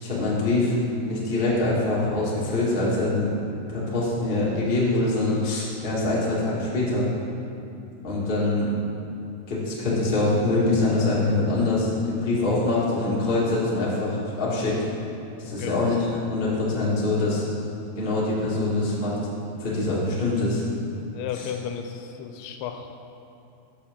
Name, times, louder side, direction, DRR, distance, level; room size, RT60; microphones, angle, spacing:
voice 1, 0.0-0.7 1.0-3.3 3.7-7.1 8.0-8.7 9.5-14.8 15.4-17.5 18.0-19.1 19.6-20.6 21.3-21.5, left 2 dB, 50° left, -7 dB, 0.6 m, -24 dB
voice 2, 15.4-16.0 16.5-16.6 21.0-22.9, left 8 dB, 80° left, 5 dB, 2.4 m, -34 dB
13.0 x 6.9 x 3.6 m, 2.8 s
omnidirectional pair, 4.7 m